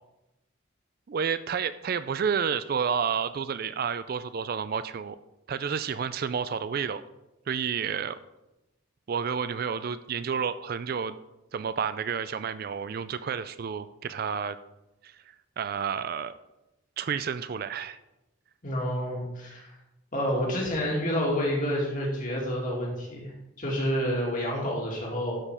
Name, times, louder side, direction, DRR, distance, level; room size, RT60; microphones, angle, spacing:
voice 1, 1.1-5.2 5.5-7.0 7.5-8.2 9.1-11.2 11.5-14.6 15.0-15.2 15.6-16.3 17.0-18.0, right 6 dB, 45° right, 14 dB, 0.3 m, -30 dB
voice 2, 18.6-19.7 20.1-25.4, equal, 40° left, -2 dB, 2.5 m, -29 dB
12.0 x 5.2 x 4.9 m, 0.95 s
head